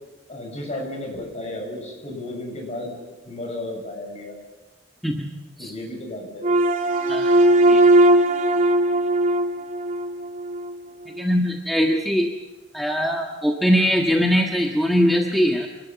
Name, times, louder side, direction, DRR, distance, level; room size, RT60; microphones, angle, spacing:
voice 1, 0.3-3.0 3.2-4.3 5.6-6.6, left 1 dB, 35° left, 1 dB, 7.1 m, -33 dB
sound 1, 6.4-10.7, right 1 dB, 40° right, 2.5 m, -18 dB
voice 2, 11.1-12.3 12.7-15.7, equal, ahead, 0 dB, 1.5 m, -21 dB
26.5 x 20.0 x 7.1 m, 1.1 s
head